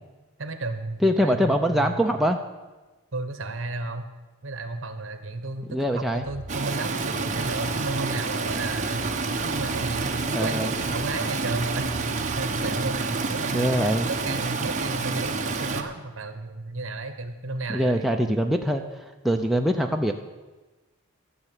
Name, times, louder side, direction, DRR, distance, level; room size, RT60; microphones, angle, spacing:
voice 1, 0.4-2.2 3.1-4.1 4.4-9.0 9.4-18.1, right 2 dB, 60° right, 9 dB, 1.2 m, -33 dB
voice 2, 1.0-2.4 5.7-6.2 10.3-10.7 13.5-14.1 17.7-20.1, equal, ahead, 2 dB, 0.5 m, -23 dB
sound 1, 6.1-13.0, right 1 dB, 40° left, 1.7 m, -41 dB
Stream, 6.5-15.8, right 3 dB, 35° right, 0.9 m, -29 dB
13.0 x 6.8 x 9.0 m, 1.2 s
head